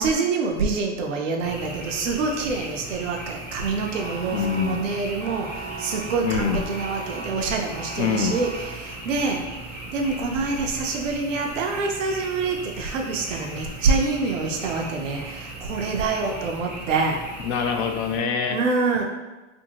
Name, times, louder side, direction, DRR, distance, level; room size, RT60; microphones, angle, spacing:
voice 1, 0.0-9.4 9.9-17.2 18.5-19.1, right 4 dB, 85° right, 1 dB, 0.6 m, -26 dB
Frog, 1.4-18.2, right 2 dB, 5° right, 0.4 m, -38 dB
sound 1, 3.9-9.2, right 4 dB, 45° right, 0.6 m, -39 dB
voice 2, 4.3-4.9 6.2-6.6 8.0-8.4 17.4-18.6, left 6 dB, 60° left, 4 dB, 0.5 m, -25 dB
2.6 x 2.6 x 2.8 m, 1.1 s
hypercardioid pair, 115°, 37 cm